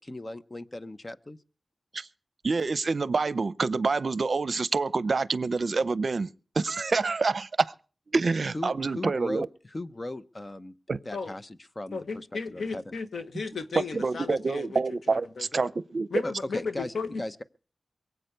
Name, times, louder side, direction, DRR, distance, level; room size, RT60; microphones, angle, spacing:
voice 1, 0.1-1.4 8.5-10.7 11.1-12.8 16.2-17.4, left 1 dB, 30° left, 0.8 m, -37 dB
voice 2, 2.4-6.3 6.6-7.7 8.1-9.5 10.9-11.0 13.8-16.2, right 4 dB, 65° right, 0.6 m, -27 dB
voice 3, 11.9-14.8 15.1-15.7 16.1-17.4, left 4 dB, 85° left, 1.2 m, -35 dB
23.0 x 8.0 x 6.7 m
wide cardioid pair, 70°, 0 cm